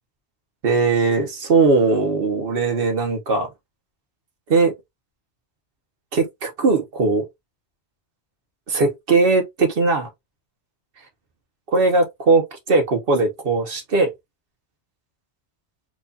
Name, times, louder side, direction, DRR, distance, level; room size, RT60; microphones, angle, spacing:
voice 1, 0.6-3.5 4.5-4.7 6.1-7.3 8.7-10.1 11.7-14.1, right 3 dB, 55° right, 1.1 m, -19 dB
4.6 x 2.4 x 2.7 m
omnidirectional pair, 1.2 m